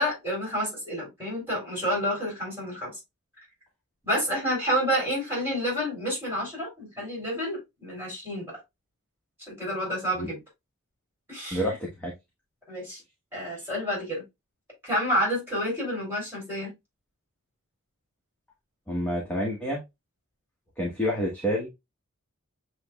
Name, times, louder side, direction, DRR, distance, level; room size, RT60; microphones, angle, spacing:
voice 1, 0.0-3.0 4.0-8.6 9.5-10.4 11.3-11.7 12.7-13.0 13.3-14.2 14.8-16.7, equal, 10° right, 3.3 m, -29 dB
voice 2, 11.5-12.1 18.9-19.8 20.8-21.7, equal, 5° left, 1.1 m, -28 dB
7.4 x 3.0 x 2.3 m
head